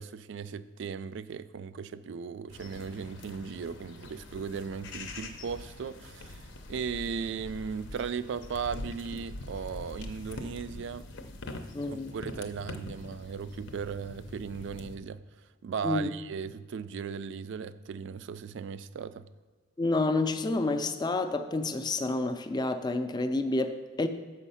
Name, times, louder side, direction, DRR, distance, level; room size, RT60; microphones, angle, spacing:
voice 1, 0.0-11.1 11.9-15.2 15.6-19.3, right 6 dB, 65° right, 0.3 m, -37 dB
sound 1, 2.5-15.0, left 2 dB, 65° left, 0.6 m, -44 dB
voice 2, 11.7-12.1 15.8-16.1 19.8-24.1, left 2 dB, 20° left, 0.4 m, -29 dB
7.2 x 5.3 x 5.6 m
head